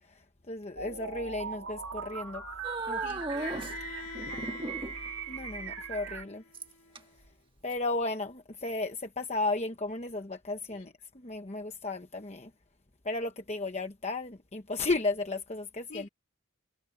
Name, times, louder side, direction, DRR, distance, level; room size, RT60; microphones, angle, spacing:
voice 1, 0.1-2.4 2.9-3.0 5.3-6.4 7.6-12.5 13.0-16.1, left 2 dB, 30° left, 1.0 m, -34 dB
sound 1, 0.8-6.2, right 6 dB, 75° right, 2.8 m, -39 dB
sound 2, 2.6-3.7 4.1-5.1 6.5-7.0 7.7-7.8, right 2 dB, 25° right, 1.4 m, -36 dB
voice 2, 3.0-4.6 10.7-10.9 15.9-16.1, left 5 dB, 55° left, 2.8 m, -47 dB
Bowed string instrument, 3.3-7.2, left 5 dB, 75° left, 2.2 m, -47 dB
head